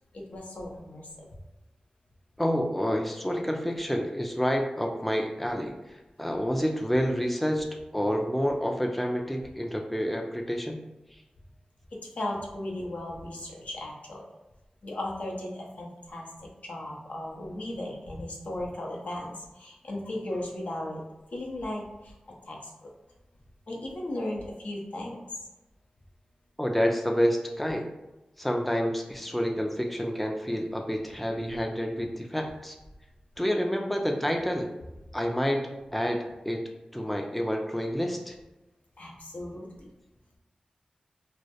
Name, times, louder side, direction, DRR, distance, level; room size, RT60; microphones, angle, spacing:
voice 1, 0.1-1.3 5.6-5.7 12.2-14.2 14.8-16.3 16.6-21.0 21.3-22.1 22.5-22.7 23.7-25.2 39.0-39.9, left 1 dB, 70° left, -2 dB, 0.5 m, -36 dB
voice 2, 2.4-7.7 7.9-10.8 11.1-11.2 26.6-27.9 28.4-32.8 33.4-34.7 35.1-36.6 36.9-38.4, equal, 5° left, 3 dB, 0.3 m, -28 dB
2.2 x 2.0 x 2.8 m, 1.0 s
cardioid pair, 45°, 3 cm